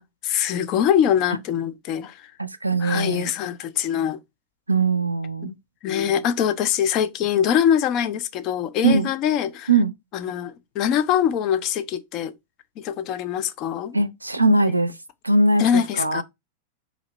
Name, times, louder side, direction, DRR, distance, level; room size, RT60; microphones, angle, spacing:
voice 1, 0.0-2.3 2.8-4.2 5.4-5.5 5.8-9.7 10.1-12.3 12.8-14.0 15.6-16.2, left 9 dB, 40° left, 0.4 m, -23 dB
voice 2, 2.4-3.3 4.7-5.5 8.8-9.1 9.7-9.9 13.9-14.9 15.2-16.2, right 2 dB, 85° right, 0.4 m, -21 dB
4.0 x 2.7 x 3.0 m
figure-of-eight pair, 90°, 0 cm